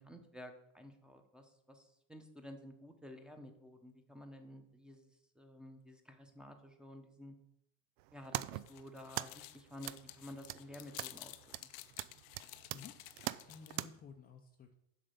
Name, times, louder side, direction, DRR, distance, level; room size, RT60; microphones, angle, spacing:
voice 1, 0.0-7.4 8.1-11.3, left 1 dB, ahead, 5 dB, 1.0 m, -52 dB
sound 1, 8.0-13.9, right 16 dB, 75° right, 0.5 m, -44 dB
sound 2, 8.2-13.9, left 16 dB, 75° left, 0.7 m, -53 dB
voice 2, 12.7-14.7, left 5 dB, 20° left, 3 dB, 0.6 m, -55 dB
7.5 x 5.4 x 6.8 m, 0.78 s
supercardioid pair, 135°, 40 cm